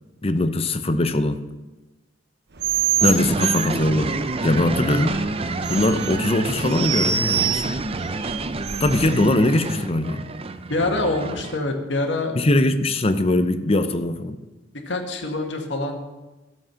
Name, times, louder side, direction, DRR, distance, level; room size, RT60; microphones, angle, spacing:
voice 1, 0.2-1.4 3.0-5.2 5.7-7.8 8.8-10.2 12.3-14.4, left 1 dB, 30° left, 10 dB, 0.7 m, -21 dB
sound 1, 2.6-9.2, right 8 dB, 60° right, 0.9 m, -27 dB
sound 2, 3.0-11.6, right 3 dB, 30° right, 0.5 m, -28 dB
voice 2, 10.7-12.4 14.9-16.0, left 2 dB, 75° left, 3 dB, 1.8 m, -25 dB
14.0 x 7.5 x 5.8 m, 1.1 s
head